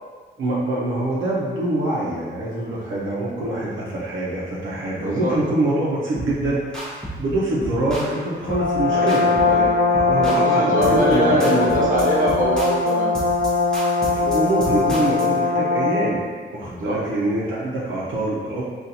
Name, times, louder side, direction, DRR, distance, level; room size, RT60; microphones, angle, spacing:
voice 1, 0.4-11.8 14.0-18.6, right 1 dB, 80° right, -6 dB, 0.7 m, -24 dB
voice 2, 4.9-5.3 8.9-9.6 10.2-13.1 16.8-17.0, equal, 45° right, -6 dB, 0.9 m, -23 dB
sound 1, 6.2-6.4 6.7-7.3 7.6-8.1 8.5-8.7 9.1-9.6 9.9-10.5 10.8-11.1 11.4-15.3, right 1 dB, 5° left, 0.8 m, -33 dB
Brass instrument, 8.5-16.2, left 3 dB, 45° left, 0.6 m, -21 dB
3.9 x 2.4 x 2.7 m, 1.5 s
wide cardioid pair, 120°, 20 cm